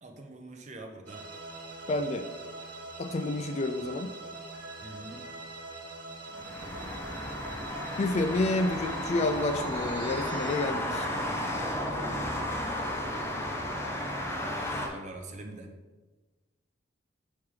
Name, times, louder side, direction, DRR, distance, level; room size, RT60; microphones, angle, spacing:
voice 1, 0.0-1.2 4.8-5.3 13.4-15.7, right 2 dB, 40° right, 4 dB, 0.8 m, -45 dB
sound 1, 1.1-12.5, right 2 dB, 70° right, 1.9 m, -44 dB
voice 2, 1.9-2.3 3.0-4.1 8.0-11.1, left 2 dB, 35° left, 9 dB, 0.3 m, -29 dB
sound 2, 6.3-14.9, left 1 dB, 15° left, 0.8 m, -33 dB
7.3 x 3.5 x 4.8 m, 1.2 s
head